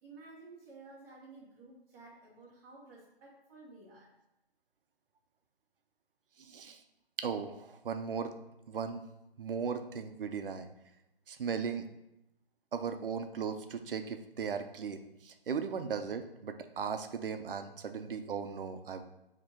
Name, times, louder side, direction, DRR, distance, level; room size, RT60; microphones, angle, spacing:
voice 1, 0.0-4.1, right 3 dB, 10° right, -7 dB, 0.7 m, -53 dB
voice 2, 6.4-6.8 7.2-8.3 8.7-9.0 9.4-10.7 11.3-11.9 12.7-19.0, right 6 dB, 65° right, 8 dB, 0.6 m, -37 dB
4.0 x 2.9 x 4.4 m, 0.88 s
hypercardioid pair, 155°, 30 cm